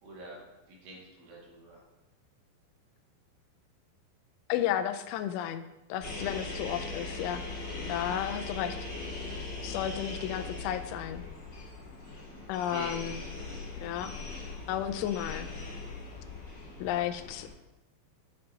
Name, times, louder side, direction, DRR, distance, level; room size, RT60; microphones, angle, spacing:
voice 1, 0.0-1.8 12.0-12.4 12.7-13.1, right 2 dB, 75° right, -4 dB, 4.6 m, -45 dB
voice 2, 4.5-7.4 7.9-8.8 9.6-11.3 12.5-13.2 13.8-14.1 14.7-15.5 16.8-17.5, left 11 dB, 85° left, 9 dB, 3.0 m, -33 dB
sound 1, 6.0-17.5, left 3 dB, 30° left, 3.3 m, -40 dB
10.5 x 7.4 x 2.9 m, 0.96 s
omnidirectional pair, 5.4 m